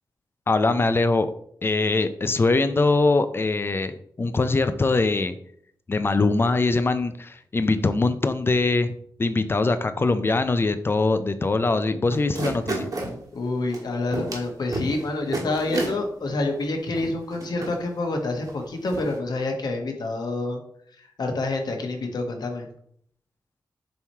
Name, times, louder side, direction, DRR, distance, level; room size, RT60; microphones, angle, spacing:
voice 1, 0.5-1.3 1.6-5.3 5.9-12.9, left 3 dB, 30° left, 10 dB, 0.4 m, -22 dB
sound 1, 12.1-13.1 13.7-13.8 14.1-14.5 14.7-15.0 15.3-15.9 16.6-16.7 16.9-17.7 18.5-18.6 18.9-19.1, right 2 dB, 50° right, 1.5 m, -30 dB
voice 2, 13.3-20.6 20.9-22.7, left 2 dB, 65° left, 3 dB, 1.2 m, -28 dB
7.1 x 3.1 x 4.5 m, 0.65 s
wide cardioid pair, 135°, 8 cm